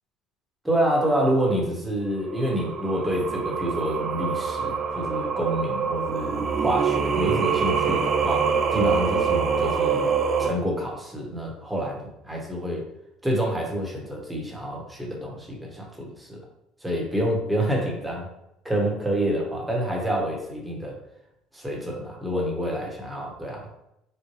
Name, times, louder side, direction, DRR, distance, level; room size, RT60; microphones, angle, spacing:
voice 1, 0.6-10.1 10.4-12.8 13.2-16.4 16.8-18.3 18.6-21.0 21.5-23.7, equal, 5° right, -2 dB, 1.1 m, -27 dB
Singing, 2.3-10.5, right 6 dB, 40° right, 0.4 m, -25 dB
4.3 x 2.1 x 3.1 m, 0.82 s
supercardioid pair, 105°, 0 cm